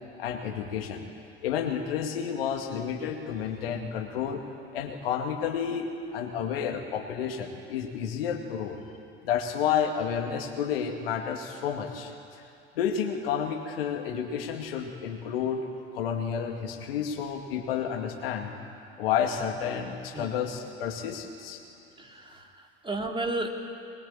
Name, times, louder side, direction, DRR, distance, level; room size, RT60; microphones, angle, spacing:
voice 1, 0.2-1.0 1.4-4.4 4.7-8.8 9.2-12.4 12.8-15.7 15.9-18.5 19.0-21.6, left 8 dB, 75° left, 3 dB, 2.2 m, -30 dB
voice 2, 22.0-23.5, right 2 dB, 15° right, 1 dB, 3.5 m, -33 dB
22.5 x 21.0 x 8.7 m, 2.5 s
hypercardioid pair, 65°, 29 cm